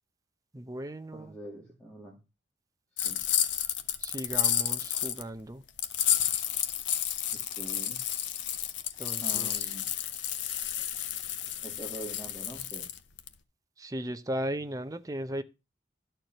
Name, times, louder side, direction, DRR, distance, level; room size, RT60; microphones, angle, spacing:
voice 1, 0.5-1.3 4.0-5.6 9.0-9.7 13.8-15.4, right 1 dB, 20° right, 0.7 m, -36 dB
voice 2, 1.1-2.2 3.0-3.2 7.3-8.0 9.2-9.9 11.6-12.9, right 1 dB, 5° left, 2.1 m, -44 dB
sound 1, 3.0-5.2 5.8-13.3, left 10 dB, 85° left, 0.8 m, -31 dB
12.0 x 4.5 x 6.5 m
head